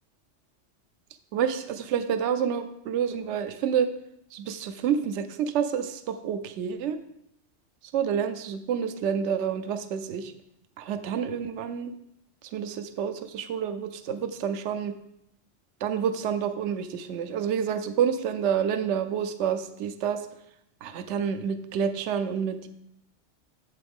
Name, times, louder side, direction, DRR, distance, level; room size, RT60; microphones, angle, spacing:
voice 1, 1.3-3.9 4.3-7.0 7.9-10.3 10.8-11.9 12.5-14.9 15.8-20.2 20.8-22.7, right 8 dB, 70° right, 9 dB, 0.9 m, -28 dB
8.0 x 7.7 x 3.6 m, 0.77 s
omnidirectional pair, 1.3 m